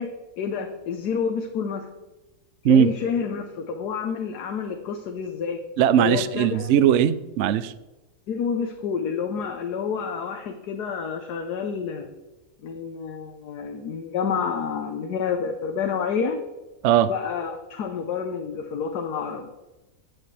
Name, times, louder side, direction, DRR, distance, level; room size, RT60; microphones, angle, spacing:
voice 1, 0.0-1.9 2.6-5.6 6.0-6.8 8.3-12.1 12.6-16.4 17.1-19.5, left 6 dB, 75° left, 4 dB, 1.4 m, -29 dB
voice 2, 5.8-7.7 16.8-17.1, right 9 dB, 75° right, 15 dB, 0.6 m, -19 dB
15.0 x 8.0 x 3.3 m, 1.1 s
omnidirectional pair, 1.7 m